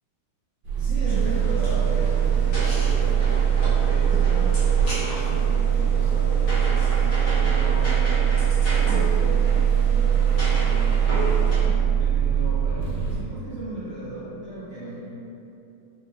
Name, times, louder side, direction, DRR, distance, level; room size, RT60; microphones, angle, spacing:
sound 1, 0.6-13.2, right 8 dB, 70° right, 1.0 m, -21 dB
voice 1, 0.8-8.1 8.7-15.1, right 1 dB, 85° right, -13 dB, 0.6 m, -36 dB
sound 2, 1.1-11.6, equal, 50° left, 0.9 m, -33 dB
4.4 x 3.0 x 2.5 m, 2.8 s
omnidirectional pair, 2.4 m